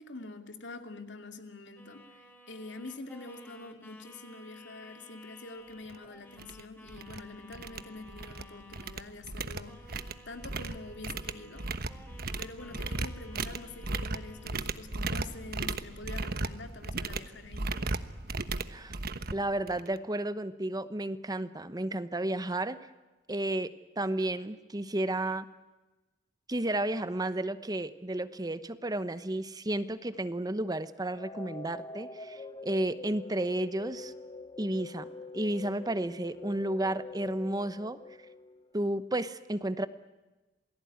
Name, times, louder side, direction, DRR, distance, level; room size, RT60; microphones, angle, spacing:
voice 1, 0.0-11.7 12.4-17.7, left 2 dB, 70° left, 6 dB, 2.6 m, -46 dB
sound 1, 1.8-9.3 9.7-14.5, left 1 dB, 10° left, 3.8 m, -54 dB
sound 2, 5.9-6.0 6.4-6.6 6.9-7.2 7.5-8.4 8.7-20.0, right 3 dB, 55° right, 1.2 m, -36 dB
voice 2, 19.3-22.8 23.3-25.5 26.5-34.1 34.6-35.1 35.3-38.0 38.7-39.9, right 1 dB, 20° right, 12 dB, 1.0 m, -32 dB
sound 3, 31.0-39.0, left 3 dB, 25° left, 1.1 m, -45 dB
28.0 x 19.0 x 9.5 m, 1.1 s
head